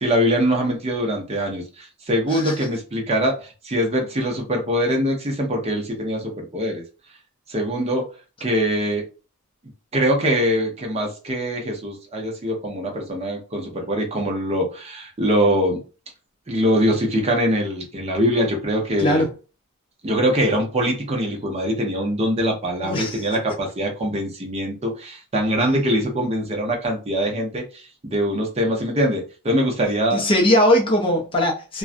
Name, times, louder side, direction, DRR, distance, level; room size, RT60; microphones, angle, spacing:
voice 1, 0.0-6.8 7.5-8.1 8.4-9.0 9.9-15.8 16.5-19.2 20.0-30.2, equal, 30° right, 0.6 m, -23 dB
voice 2, 19.0-19.3 22.8-23.4 30.1-31.8, left 1 dB, 25° left, 0.5 m, -20 dB
2.4 x 2.1 x 2.5 m
head